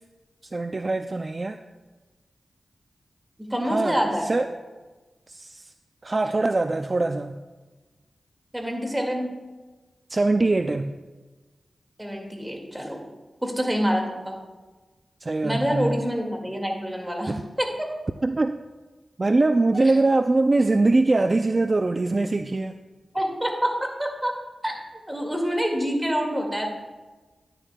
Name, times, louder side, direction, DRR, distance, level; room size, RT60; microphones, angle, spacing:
voice 1, 0.5-1.6 3.7-4.5 5.3-5.7 6.0-7.4 10.1-11.0 15.2-16.0 17.3-17.4 18.2-18.6 19.2-22.8, right 2 dB, 45° right, 8 dB, 0.3 m, -23 dB
voice 2, 3.4-4.3 8.5-9.4 12.0-13.0 13.4-14.4 15.4-17.9 23.1-24.3 24.6-24.7 25.1-26.7, equal, 10° right, 1 dB, 1.9 m, -26 dB
10.5 x 10.0 x 2.2 m, 1.2 s
cardioid pair, 50°, 0 cm